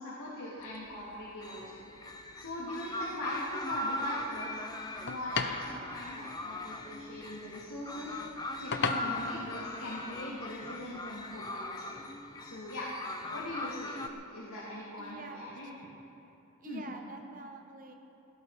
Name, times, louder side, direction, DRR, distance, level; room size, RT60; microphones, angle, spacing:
voice 1, 0.0-1.6 2.3-4.6 4.9-8.2 8.6-11.9 12.4-12.9 13.3-14.0 14.3-15.7 16.6-16.9, left 1 dB, 80° left, -7 dB, 3.3 m, -41 dB
sound 1, 0.6-11.4, left 4 dB, 50° left, 0.8 m, -42 dB
sound 2, 1.4-14.1, left 1 dB, 15° left, 0.7 m, -40 dB
voice 2, 15.0-16.0 16.6-17.9, right 3 dB, 40° right, 3 dB, 1.2 m, -47 dB
17.0 x 16.5 x 4.4 m, 2.9 s
head